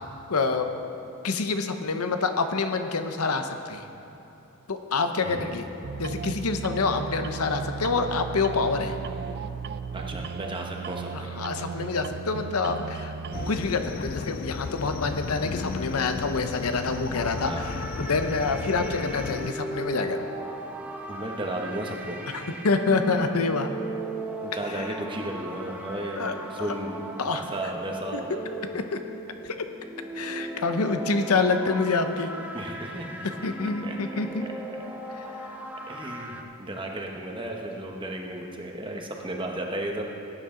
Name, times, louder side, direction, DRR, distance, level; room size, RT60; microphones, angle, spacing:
voice 1, 0.3-0.7 1.2-3.9 4.7-5.6 6.0-9.0 11.1-13.1 13.5-20.2 22.3-23.7 24.7-24.8 26.2-26.7 27.2-27.4 28.1-28.2 28.7-29.0 29.4-29.6 30.1-32.3 33.2-34.5 35.2-35.3, left 4 dB, 80° left, 7 dB, 0.8 m, -27 dB
sound 1, 5.8-13.7, right 6 dB, 45° right, 0.3 m, -36 dB
voice 2, 9.9-11.4 17.4-17.7 21.1-22.2 24.4-27.0 27.3-28.4 32.5-33.3 33.8-34.0 35.9-40.0, right 1 dB, 20° right, 1 dB, 1.1 m, -34 dB
sound 2, 13.3-19.5, left 5 dB, 40° left, 0.3 m, -34 dB
sound 3, 17.1-36.4, right 2 dB, 5° right, 0.7 m, -38 dB
18.0 x 9.5 x 3.8 m, 2.9 s
head